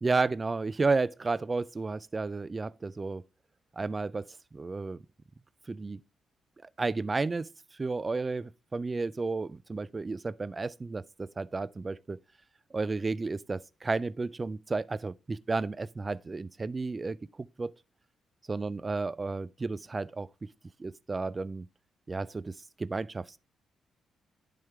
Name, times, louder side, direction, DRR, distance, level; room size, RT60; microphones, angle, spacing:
voice 1, 0.0-3.2 3.8-4.3 4.5-5.0 5.7-6.0 6.8-7.5 7.8-12.2 12.7-17.7 18.5-20.5 20.8-21.7 22.1-23.4, right 3 dB, 30° right, 0.3 m, -32 dB
10.5 x 3.7 x 3.4 m
cardioid pair, 75°, 0 cm